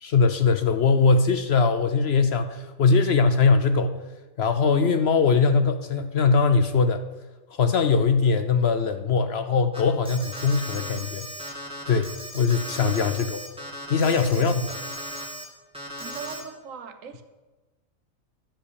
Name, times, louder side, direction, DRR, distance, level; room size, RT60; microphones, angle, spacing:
voice 1, 0.0-3.9 4.4-7.0 7.5-11.3 11.9-13.5 13.9-14.5, left 4 dB, 60° left, 9 dB, 0.8 m, -21 dB
Alarm, 9.7-15.4 15.7-16.4, equal, 5° right, 1.9 m, -37 dB
voice 2, 16.0-17.2, right 6 dB, 70° right, 9 dB, 1.3 m, -40 dB
11.5 x 5.6 x 8.0 m, 1.2 s
omnidirectional pair, 1.4 m